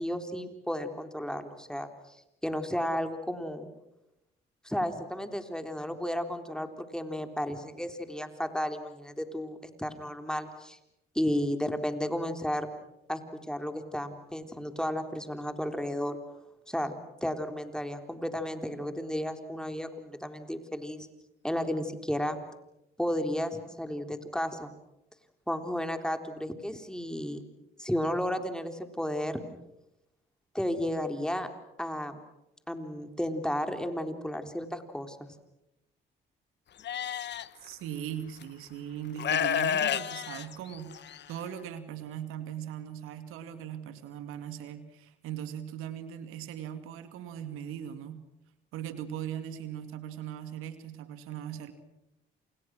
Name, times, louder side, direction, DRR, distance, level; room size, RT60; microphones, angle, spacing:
voice 1, 0.0-2.2 2.4-3.7 4.6-10.8 11.1-12.7 13.1-13.2 13.5-16.2 16.7-16.9 17.2-21.1 21.4-22.4 23.0-24.7 25.5-27.4 27.8-29.4 30.5-31.5 31.8-32.2 32.7-35.3, equal, 5° left, 7 dB, 3.8 m, -33 dB
Livestock farm animals working animals, 36.8-37.5 38.4-38.5 39.2-41.2, left 9 dB, 60° left, 1.1 m, -30 dB
voice 2, 37.6-48.2 48.7-51.7, right 10 dB, 85° right, 10 dB, 2.3 m, -39 dB
28.5 x 28.0 x 6.3 m, 0.88 s
supercardioid pair, 70°, 21 cm